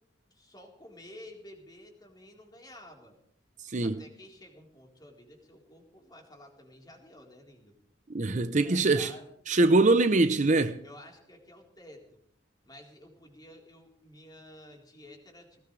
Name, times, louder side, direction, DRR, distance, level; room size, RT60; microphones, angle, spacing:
voice 1, 0.3-3.1 3.8-7.7 8.6-9.2 10.8-12.1 12.6-15.6, left 1 dB, 20° left, 4.0 m, -51 dB
voice 2, 3.6-4.0 8.1-9.1 9.5-10.8, right 2 dB, 40° right, 0.7 m, -23 dB
20.0 x 18.0 x 3.3 m
head